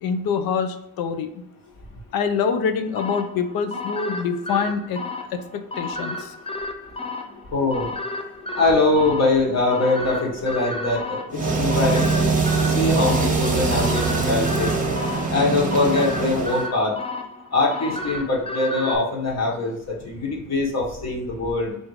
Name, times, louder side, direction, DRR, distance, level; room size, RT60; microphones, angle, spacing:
voice 1, 0.0-1.4 2.1-5.0 5.3-6.3, left 6 dB, 90° left, 8 dB, 0.6 m, -25 dB
sound 1, 3.0-19.0, left 2 dB, 15° left, 0.5 m, -33 dB
voice 2, 7.5-7.9 8.6-12.4 12.7-14.8 15.3-17.0 17.5-21.8, left 2 dB, 50° left, -2 dB, 1.2 m, -22 dB
sound 2, 11.3-16.7, right 4 dB, 25° right, 0.9 m, -22 dB
3.5 x 2.7 x 4.6 m, 0.81 s
cardioid pair, 105°, 35 cm